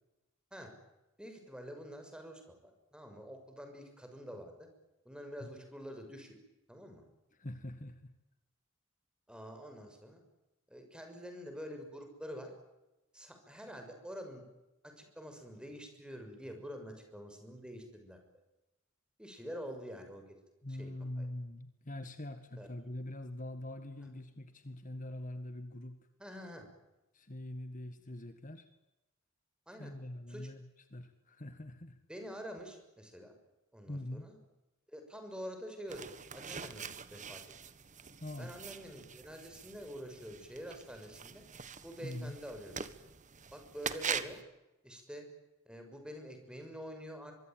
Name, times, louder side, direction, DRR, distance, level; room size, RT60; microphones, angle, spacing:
voice 1, 1.2-4.7 5.0-6.4 6.7-7.0 9.3-10.2 10.7-12.5 13.1-14.5 14.8-18.2 19.2-20.2 20.7-20.9 21.2-21.3 22.6-22.7 26.2-26.7 29.7-29.9 30.3-30.5 32.1-33.3 33.7-34.4 34.9-37.4 38.4-41.4 41.8-42.9 43.5-44.4 44.8-45.3 45.6-47.3, equal, 5° right, 5 dB, 6.5 m, -47 dB
voice 2, 7.4-8.1 20.6-26.0 27.1-28.7 29.8-30.7 30.9-32.0 33.9-34.3 38.2-38.5 42.0-42.4, left 1 dB, 40° left, 9 dB, 1.8 m, -43 dB
sound 1, 35.9-44.4, right 6 dB, 35° right, 1.5 m, -44 dB
24.0 x 23.5 x 9.3 m, 0.98 s
head